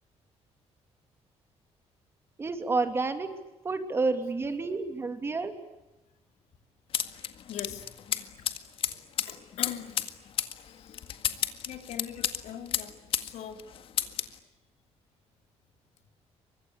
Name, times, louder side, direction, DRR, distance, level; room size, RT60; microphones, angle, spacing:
voice 1, 2.4-3.3 3.6-5.5, right 3 dB, 20° right, 8 dB, 2.8 m, -29 dB
sound 1, 6.9-13.3 13.6-14.4, left 9 dB, 50° left, 1.8 m, -32 dB
voice 2, 7.5-7.9 8.4-8.6 9.2-10.1 10.6-11.1 11.6-13.7 14.0-14.1, left 9 dB, 75° left, 6 dB, 4.4 m, -42 dB
28.5 x 24.5 x 8.4 m, 1.0 s
cardioid pair, 175°, 12 cm